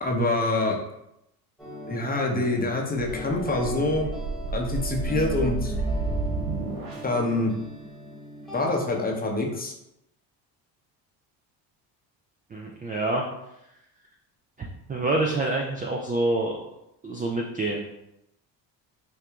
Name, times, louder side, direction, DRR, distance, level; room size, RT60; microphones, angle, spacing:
voice 1, 0.0-0.8 1.9-4.1 4.5-5.7 7.0-7.5 8.5-9.7, left 2 dB, 20° left, 0 dB, 0.7 m, -25 dB
sound 1, 1.6-9.2, left 1 dB, ahead, 1.2 m, -38 dB
sound 2, 3.0-7.3, right 3 dB, 45° right, 0.8 m, -31 dB
voice 2, 12.5-13.2 14.9-16.6 17.0-17.8, right 2 dB, 20° right, 0 dB, 0.3 m, -26 dB
4.6 x 2.3 x 2.3 m, 0.85 s
hypercardioid pair, 65°, 49 cm